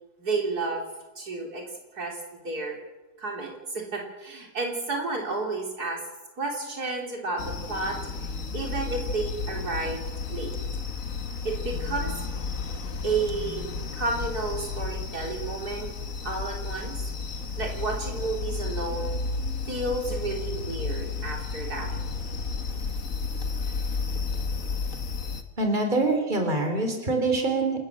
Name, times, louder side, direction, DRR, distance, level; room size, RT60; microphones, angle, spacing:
voice 1, 0.2-0.9 1.2-1.6 1.9-2.2 2.4-2.8 3.2-6.0 6.4-10.5 11.4-12.1 13.0-13.7 13.9-15.9 16.2-17.1 17.6-19.2 19.7-21.9, right 3 dB, 65° right, 0 dB, 4.1 m, -31 dB
sound 1, 7.4-25.4, left 4 dB, 50° left, 1.8 m, -32 dB
voice 2, 25.6-27.8, right 2 dB, 25° right, 4 dB, 3.8 m, -25 dB
28.5 x 14.0 x 7.5 m, 1.1 s
omnidirectional pair, 1.8 m